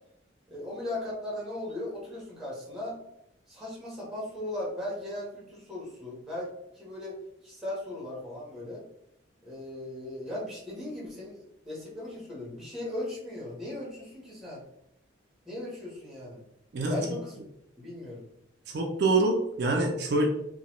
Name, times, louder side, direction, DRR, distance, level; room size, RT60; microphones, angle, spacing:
voice 1, 0.5-3.0 3.5-6.5 6.7-7.2 7.4-8.8 9.4-14.6 15.5-16.4 16.9-17.4 17.8-18.2, left 1 dB, ahead, -5 dB, 1.0 m, -37 dB
voice 2, 18.7-20.3, right 2 dB, 60° right, 1 dB, 0.4 m, -25 dB
2.8 x 2.2 x 2.9 m, 0.78 s
head